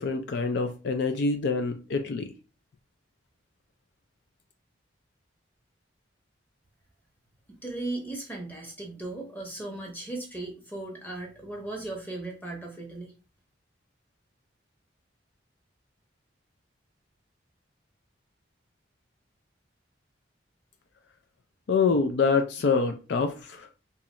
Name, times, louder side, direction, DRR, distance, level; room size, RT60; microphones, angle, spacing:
voice 1, 0.0-2.3 21.7-23.7, left 4 dB, 60° left, 0.3 m, -26 dB
voice 2, 7.5-13.1, right 2 dB, 10° left, 0.9 m, -37 dB
2.9 x 2.4 x 4.1 m
head